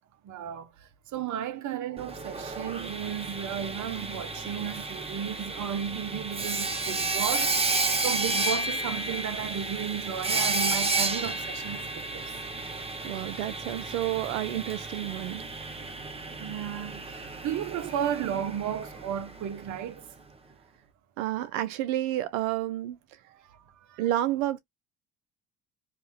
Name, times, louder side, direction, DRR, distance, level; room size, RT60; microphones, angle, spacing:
voice 1, 0.2-0.7 1.1-7.5 8.0-12.3 16.4-20.0 23.9-24.0, right 9 dB, 50° right, 0.7 m, -34 dB
Sawing, 2.0-19.8, right 3 dB, 15° right, 0.8 m, -32 dB
voice 2, 13.0-15.4 21.2-23.0 24.0-24.6, right 14 dB, 90° right, 0.5 m, -30 dB
2.7 x 2.4 x 3.3 m
hypercardioid pair, 70°, 39 cm